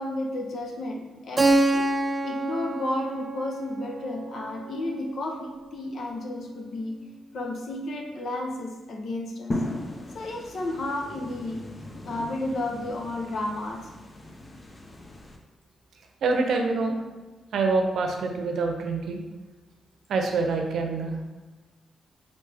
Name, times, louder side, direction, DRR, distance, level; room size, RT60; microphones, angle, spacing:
voice 1, 0.0-1.9 2.2-7.0 7.3-9.6 10.1-11.6 12.0-13.9, left 1 dB, 65° left, 1 dB, 0.8 m, -32 dB
Keyboard (musical), 1.4-5.9, right 1 dB, 30° right, 0.5 m, -27 dB
sound 1, 9.5-15.4, left 1 dB, 25° left, 0.6 m, -37 dB
voice 2, 16.2-17.0 17.5-19.2 20.1-21.4, right 3 dB, 75° right, 3 dB, 0.6 m, -26 dB
4.2 x 3.3 x 3.4 m, 1.2 s
cardioid pair, 90°, 0 cm